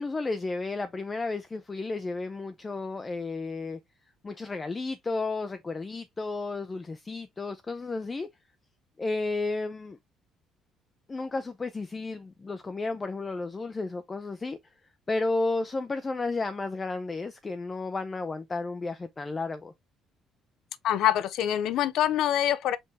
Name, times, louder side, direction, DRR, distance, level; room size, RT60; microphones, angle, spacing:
voice 1, 0.0-3.8 4.2-8.3 9.0-10.0 11.1-14.6 15.1-19.7, left 3 dB, 20° left, 0.5 m, -32 dB
voice 2, 20.8-22.8, left 11 dB, 70° left, 0.6 m, -25 dB
5.3 x 3.4 x 2.8 m
cardioid pair, 135°, 0 cm